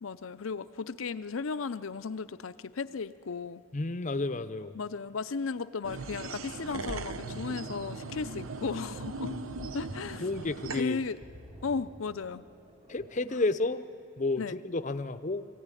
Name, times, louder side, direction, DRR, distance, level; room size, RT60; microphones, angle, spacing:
voice 1, 0.0-3.6 4.7-9.3 9.7-10.3 10.8-11.2 11.6-12.4 14.4-14.6, left 4 dB, 80° left, 14 dB, 0.6 m, -35 dB
voice 2, 3.7-4.8 9.2-9.4 10.2-11.0 12.9-13.8 14.2-15.5, left 2 dB, 35° left, 11 dB, 0.6 m, -31 dB
sound 1, 5.8-10.8, right 3 dB, 85° right, 0.9 m, -39 dB
sound 2, 6.5-13.5, equal, 25° right, 1.1 m, -50 dB
22.0 x 15.5 x 9.9 m, 2.4 s
head